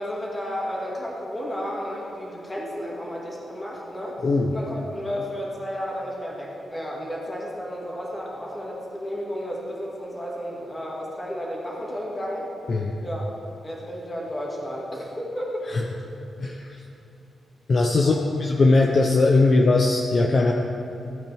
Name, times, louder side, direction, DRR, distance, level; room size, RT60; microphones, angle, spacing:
voice 1, 0.0-12.5 13.0-13.3 13.6-15.5 18.0-18.2, equal, 15° left, -4 dB, 2.2 m, -32 dB
voice 2, 16.4-16.8 17.7-18.1 18.4-20.5, left 3 dB, 40° left, 1 dB, 0.6 m, -19 dB
15.0 x 8.6 x 3.5 m, 2.7 s
wide cardioid pair, 140°, 0 cm